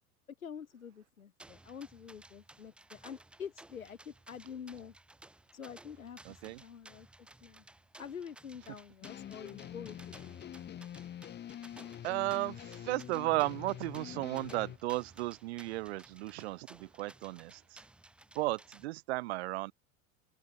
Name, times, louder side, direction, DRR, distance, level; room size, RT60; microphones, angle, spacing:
voice 1, 0.4-4.9 5.5-7.6 8.0-10.8, left 7 dB, 80° left, 1.4 m, -47 dB
sound 1, 1.4-18.8, right 2 dB, 5° right, 0.4 m, -57 dB
voice 2, 6.2-6.6 12.0-17.8 18.3-19.7, right 20 dB, 50° right, 0.5 m, -35 dB
sound 2, 9.0-14.8, left 10 dB, 25° left, 1.3 m, -46 dB
open air
figure-of-eight pair, 80°, 42 cm